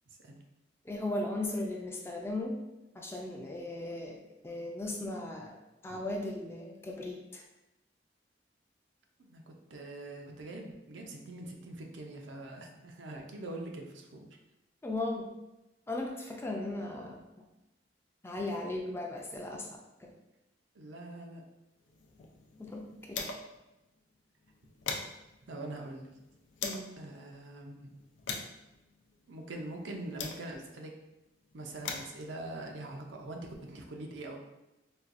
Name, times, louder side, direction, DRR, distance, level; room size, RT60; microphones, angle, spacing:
voice 1, 0.1-0.4 5.9-6.0 9.2-14.3 20.7-21.4 25.4-26.1 27.0-27.9 29.3-30.9 31.5-34.4, right 2 dB, 85° right, 2 dB, 0.5 m, -43 dB
voice 2, 0.9-2.6 3.0-4.2 4.4-5.6 5.8-7.4 14.8-15.3 15.9-17.2 18.2-20.1 22.6-22.8 23.1-23.2 26.6-26.9, left 2 dB, 15° left, 0 dB, 0.3 m, -37 dB
sound 1, 21.9-23.7 24.0-24.1 24.4-27.0 27.6-30.8 31.5-33.7, left 5 dB, 90° left, 0.4 m, -43 dB
4.2 x 2.3 x 2.5 m, 0.96 s
head